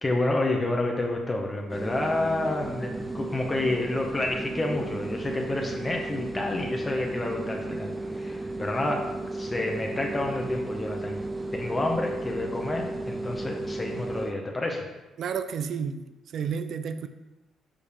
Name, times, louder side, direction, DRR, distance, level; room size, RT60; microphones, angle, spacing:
voice 1, 0.0-7.9 8.2-9.1 9.3-11.2 11.5-14.8, left 2 dB, 25° left, 1 dB, 0.9 m, -29 dB
sound 1, 1.7-14.3, right 2 dB, 15° right, 0.5 m, -34 dB
voice 2, 15.2-16.1 16.3-17.1, right 7 dB, 65° right, 10 dB, 0.4 m, -31 dB
7.1 x 5.0 x 3.5 m, 1.1 s
cardioid pair, 90°, 0 cm